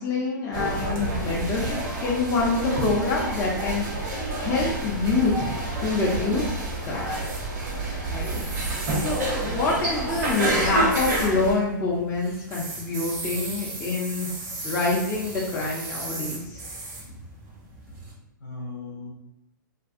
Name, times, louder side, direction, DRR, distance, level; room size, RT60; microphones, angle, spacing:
voice 1, 0.0-3.8 4.4-5.5 5.8-6.6 6.8-7.2 8.0-14.3 14.6-16.6, left 3 dB, 25° left, -4 dB, 0.5 m, -26 dB
sound 1, 0.5-18.1, right 2 dB, 40° right, 0.8 m, -39 dB
sound 2, 0.5-11.5, right 1 dB, 55° right, 1.1 m, -28 dB
voice 2, 3.6-4.0 8.5-8.8 10.1-10.2 17.1-17.2 17.9-18.0 18.4-19.1, left 3 dB, 70° left, -3 dB, 0.6 m, -40 dB
2.5 x 2.2 x 2.4 m, 0.82 s
figure-of-eight pair, 110°, 11 cm